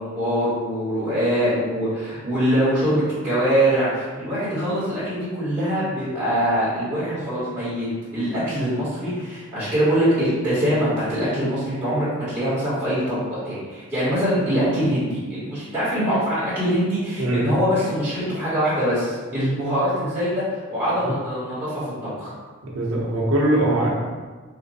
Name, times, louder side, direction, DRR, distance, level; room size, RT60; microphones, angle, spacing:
voice 1, 0.0-21.9 22.2-22.3, equal, 15° right, -13 dB, 1.4 m, -23 dB
voice 2, 17.2-17.5 21.0-21.2 22.6-23.9, right 1 dB, 90° right, -3 dB, 0.9 m, -21 dB
3.7 x 2.6 x 4.1 m, 1.4 s
head